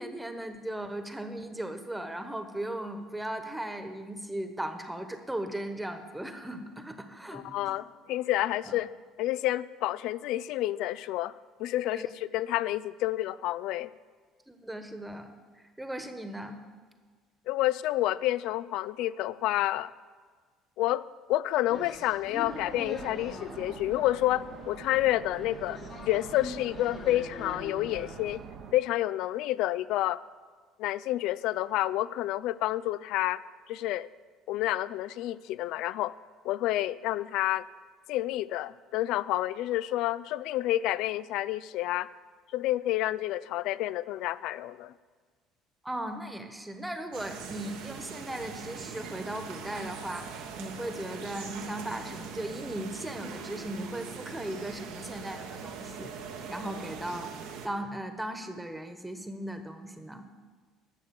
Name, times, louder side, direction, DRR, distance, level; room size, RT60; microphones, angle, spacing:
voice 1, 0.0-7.7 8.6-8.8 11.8-12.1 14.5-15.3 15.8-16.6 45.8-56.1 56.5-57.3 57.6-60.3, right 1 dB, 10° right, 7 dB, 1.2 m, -37 dB
voice 2, 7.3-8.9 9.2-11.3 11.6-13.9 17.5-19.9 20.8-25.8 26.1-28.4 28.7-30.2 30.8-33.4 33.7-34.1 34.5-36.1 36.4-37.6 38.1-42.1 42.5-44.9, left 15 dB, 70° left, 18 dB, 0.3 m, -29 dB
sound 1, 21.7-28.4, left 4 dB, 50° left, 1.7 m, -44 dB
sound 2, 22.4-28.7, right 7 dB, 60° right, 0.9 m, -45 dB
sound 3, 47.1-57.7, right 6 dB, 80° right, 1.2 m, -41 dB
11.5 x 6.6 x 6.9 m, 1.5 s
hypercardioid pair, 70°, 0 cm